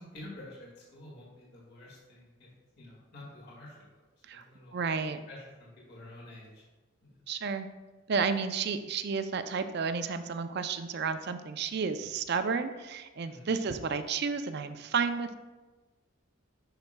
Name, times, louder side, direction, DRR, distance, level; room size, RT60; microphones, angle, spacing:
voice 1, 0.0-2.5 2.8-3.8 4.3-4.7 5.3-6.6 7.0-7.2 13.2-13.5, left 1 dB, 50° left, -5 dB, 1.9 m, -49 dB
voice 2, 4.7-5.2 7.3-7.7 8.1-15.3, right 5 dB, 50° right, 9 dB, 0.4 m, -31 dB
10.5 x 5.7 x 2.2 m, 1.2 s
head